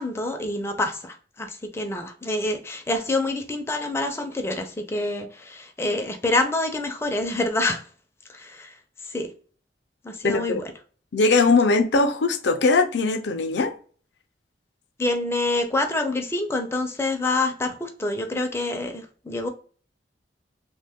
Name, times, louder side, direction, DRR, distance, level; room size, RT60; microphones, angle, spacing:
voice 1, 0.0-7.8 8.3-8.7 9.1-9.3 10.0-10.6 15.0-19.5, left 2 dB, 15° left, 0.4 m, -27 dB
voice 2, 10.2-10.6 11.1-13.7, left 3 dB, 75° left, 0.5 m, -20 dB
2.9 x 2.2 x 3.4 m
head